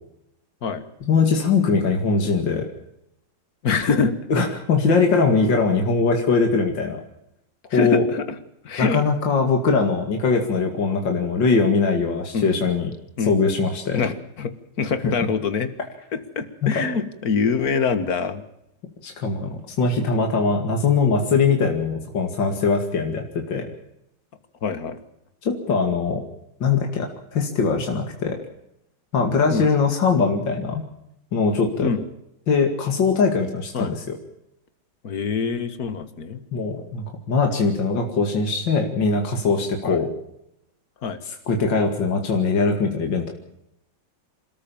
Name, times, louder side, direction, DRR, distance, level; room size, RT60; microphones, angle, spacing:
voice 1, 1.1-2.7 4.3-7.0 7.7-8.0 8.8-12.9 13.2-14.0 15.0-15.1 16.6-16.7 19.0-23.7 25.4-26.2 26.6-28.4 29.1-30.9 31.3-31.9 32.5-34.2 36.5-40.1 41.3-43.3, left 4 dB, 70° left, 3 dB, 3.0 m, -21 dB
voice 2, 3.6-4.2 7.7-8.3 8.6-9.0 12.3-12.5 13.2-13.4 13.9-15.7 16.1-18.4 24.6-25.0 29.5-29.7 31.8-32.0 33.7-33.9 35.0-36.4 39.8-40.0 41.0-41.2, left 5 dB, 50° left, 11 dB, 2.0 m, -24 dB
27.5 x 14.0 x 7.2 m, 0.81 s
omnidirectional pair, 2.1 m